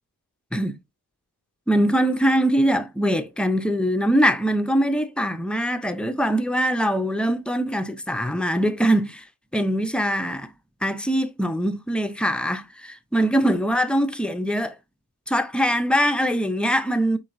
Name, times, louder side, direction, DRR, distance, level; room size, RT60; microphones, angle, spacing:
voice 1, 1.7-9.2 9.5-10.5 10.8-14.8 15.3-17.2, equal, 5° left, 0.4 m, -22 dB
4.7 x 4.2 x 2.5 m
wide cardioid pair, 140°, 37 cm